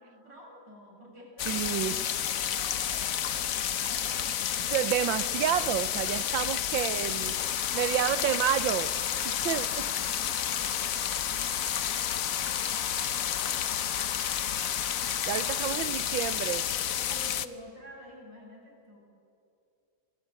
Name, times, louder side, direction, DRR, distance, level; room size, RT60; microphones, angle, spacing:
voice 1, 0.0-4.6 7.7-8.4 9.1-14.4 17.0-19.0, equal, 70° right, -2 dB, 8.4 m, -49 dB
sound 1, 1.4-17.5, left 9 dB, 55° left, 1.1 m, -30 dB
voice 2, 1.5-1.9 4.7-7.4 7.7-8.9 9.4-9.7 15.3-16.7, right 12 dB, 90° right, 16 dB, 1.5 m, -29 dB
sound 2, 7.3-15.6, left 6 dB, 80° left, 2.1 m, -43 dB
28.5 x 21.5 x 9.0 m, 2.6 s
omnidirectional pair, 2.0 m